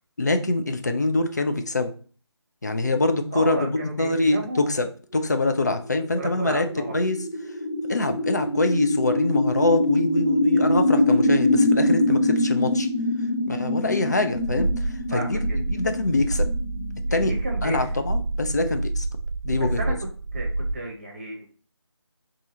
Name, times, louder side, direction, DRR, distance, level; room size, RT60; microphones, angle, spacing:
voice 1, 0.2-1.9 2.6-4.9 5.1-6.7 6.9-7.2 7.9-12.9 13.5-14.7 15.1-15.4 15.7-16.5 17.1-17.3 17.6-19.1 19.4-19.8, left 2 dB, 35° left, 7 dB, 0.4 m, -24 dB
voice 2, 3.3-4.7 6.1-7.0 13.8-14.2 15.1-15.6 17.1-17.8 19.6-19.9 20.3-21.4, right 2 dB, 25° right, 1 dB, 0.8 m, -33 dB
sound 1, 5.8-17.9, left 1 dB, 60° left, 1.4 m, -24 dB
sound 2, 14.3-20.7, right 2 dB, 60° right, 0.6 m, -28 dB
3.6 x 2.7 x 4.2 m, 0.40 s
figure-of-eight pair, 165°, 15 cm